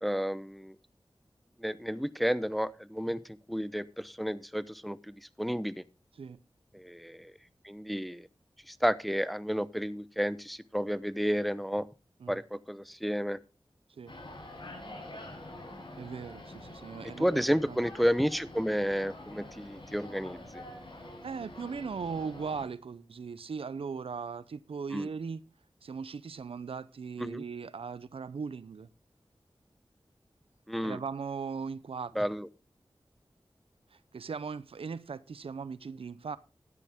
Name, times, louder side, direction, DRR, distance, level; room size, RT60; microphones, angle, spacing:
voice 1, 0.0-0.7 1.6-3.2 3.5-5.8 6.7-7.3 7.6-8.3 8.7-11.9 12.3-13.4 17.2-20.6 24.9-25.1 27.2-27.4 30.7-31.0 32.2-32.5, equal, ahead, 0.8 m, -31 dB
sound 1, 14.1-22.7, left 1 dB, 60° left, 5.6 m, -46 dB
voice 2, 16.0-17.8 21.2-25.4 25.8-28.9 30.8-32.1 33.9-36.4, right 5 dB, 90° right, 0.6 m, -39 dB
13.5 x 9.8 x 3.6 m
cardioid pair, 40°, 9 cm